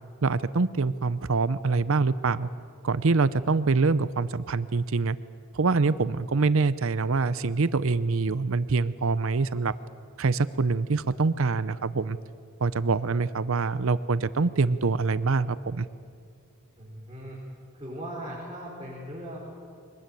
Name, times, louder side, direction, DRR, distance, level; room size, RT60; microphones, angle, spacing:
voice 1, 0.2-2.5 2.8-5.2 5.5-9.7 10.2-12.2 12.6-15.9, right 4 dB, 65° right, 16 dB, 0.6 m, -25 dB
voice 2, 16.8-17.4 17.7-19.4, equal, 20° right, -6 dB, 5.3 m, -38 dB
24.0 x 19.5 x 9.2 m, 2.2 s
head